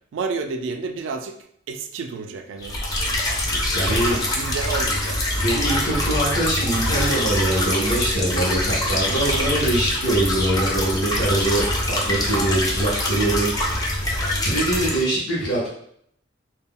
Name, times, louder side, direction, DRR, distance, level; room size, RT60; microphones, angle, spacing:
voice 1, 0.1-1.4 1.7-2.8 4.1-5.2, right 4 dB, 80° right, 6 dB, 0.3 m, -30 dB
Water in drain, 2.6-15.0, left 1 dB, 20° left, 0.4 m, -24 dB
voice 2, 3.7-4.2 5.4-13.5 14.4-15.7, right 1 dB, 75° left, -7 dB, 0.8 m, -23 dB
2.2 x 2.1 x 3.6 m, 0.69 s
head